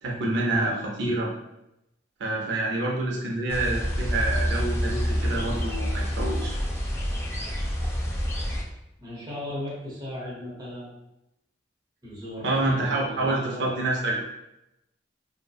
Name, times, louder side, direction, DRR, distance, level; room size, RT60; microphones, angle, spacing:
voice 1, 0.0-1.3 2.2-6.6 12.4-14.2, right 2 dB, 80° right, -2 dB, 0.4 m, -27 dB
sound 1, 3.5-8.6, equal, 15° left, 0.3 m, -27 dB
voice 2, 9.0-11.0 12.0-14.0, left 1 dB, 20° right, -6 dB, 0.8 m, -37 dB
2.6 x 2.1 x 2.3 m, 0.87 s
head